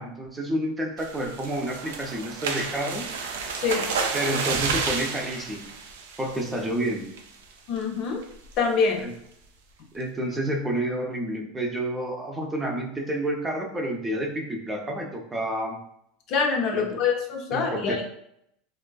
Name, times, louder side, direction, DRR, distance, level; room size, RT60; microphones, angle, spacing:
voice 1, 0.0-3.2 4.1-5.7 6.2-7.1 9.0-9.1 9.9-15.8 16.7-16.8 17.5-18.0, right 1 dB, 15° right, 1 dB, 0.5 m, -29 dB
sound 1, 1.0-6.8 7.2-7.4 7.8-7.9 8.2-8.5, right 5 dB, 85° right, 0.3 m, -31 dB
voice 2, 7.7-8.2 8.6-9.1 16.3-18.0, left 5 dB, 55° left, 2 dB, 0.5 m, -25 dB
2.4 x 2.3 x 2.3 m, 0.76 s
hypercardioid pair, 100°, 0 cm